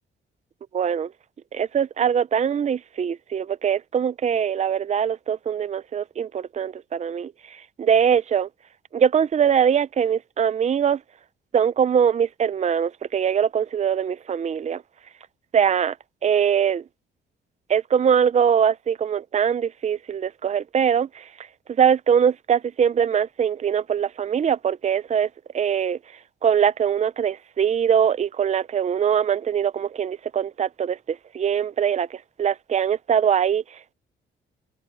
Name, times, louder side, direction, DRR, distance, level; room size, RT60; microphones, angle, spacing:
voice 1, 0.7-1.1 1.5-8.5 8.9-11.0 11.5-14.8 15.5-16.0 16.2-16.8 17.7-21.3 21.8-25.3 25.5-26.0 26.4-33.9, right 8 dB, 35° right, 0.6 m, -22 dB
cardioid pair, 90°, 20 cm